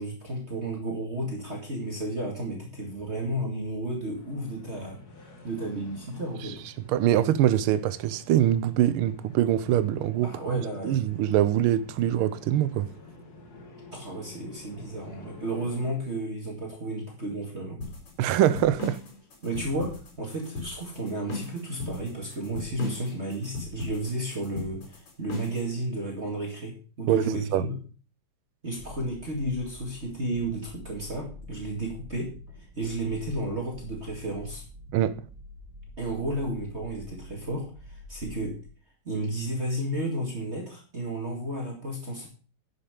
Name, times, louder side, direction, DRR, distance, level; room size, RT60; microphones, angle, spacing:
voice 1, 0.0-5.0 5.4-6.6 10.2-11.0 13.9-17.8 19.4-27.8 28.6-32.3 32.8-34.6 36.0-38.6 39.1-42.3, right 1 dB, 30° right, 2.4 m, -32 dB
sound 1, 4.1-15.9, left 2 dB, 45° left, 2.3 m, -49 dB
voice 2, 6.9-12.9 18.2-19.0 27.1-27.7 34.9-35.2, right 11 dB, 75° right, 1.6 m, -24 dB
sound 2, 17.8-25.7, left 3 dB, 80° left, 4.3 m, -38 dB
sound 3, 28.8-38.6, left 2 dB, 10° right, 3.3 m, -46 dB
11.5 x 6.8 x 5.2 m
omnidirectional pair, 2.4 m